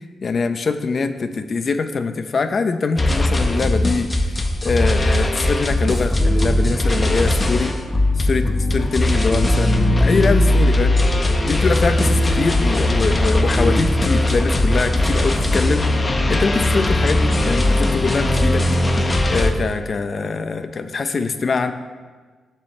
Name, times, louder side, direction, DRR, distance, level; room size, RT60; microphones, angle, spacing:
voice 1, 0.2-7.7 8.2-11.0 11.4-15.8 16.3-18.7 19.3-21.7, left 4 dB, 45° left, 9 dB, 0.7 m, -23 dB
sound 1, 3.0-19.5, left 1 dB, 20° left, 1.1 m, -19 dB
sound 2, 5.4-19.0, right 1 dB, 5° right, 3.9 m, -35 dB
19.5 x 7.5 x 3.3 m, 1.4 s
cardioid pair, 115°, 0 cm